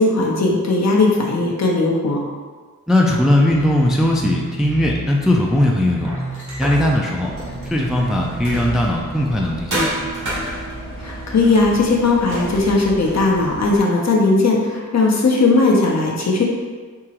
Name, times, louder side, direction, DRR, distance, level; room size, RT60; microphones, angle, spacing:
voice 1, 0.0-2.2 11.0-16.4, left 3 dB, 55° left, -2 dB, 0.7 m, -17 dB
voice 2, 2.9-6.1 6.6-7.3 7.7-10.1, left 1 dB, ahead, -1 dB, 0.4 m, -18 dB
sound 1, 3.4-9.4, right 3 dB, 40° left, 1.1 m, -31 dB
sound 2, 6.0-9.1 9.7-13.6, equal, 65° right, 1.0 m, -30 dB
sound 3, 7.3-13.8, right 1 dB, 85° right, 0.7 m, -34 dB
3.6 x 2.9 x 2.9 m, 1.5 s
wide cardioid pair, 70°, 32 cm